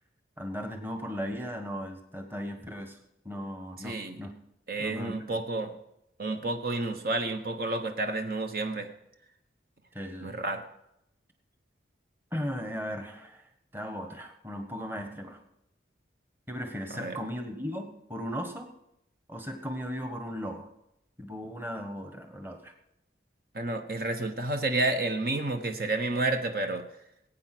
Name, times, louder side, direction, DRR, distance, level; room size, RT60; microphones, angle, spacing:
voice 1, 0.4-3.0 3.2-4.3 4.8-5.2 9.9-10.3 12.3-13.4 13.7-15.4 16.5-18.7 19.3-20.7 21.2-22.7, equal, 10° right, 5 dB, 1.4 m, -37 dB
voice 2, 3.8-4.2 4.7-5.7 6.2-8.9 10.2-10.6 16.9-17.2 23.5-26.8, right 2 dB, 50° right, 6 dB, 1.2 m, -30 dB
20.0 x 8.8 x 6.1 m, 0.82 s
head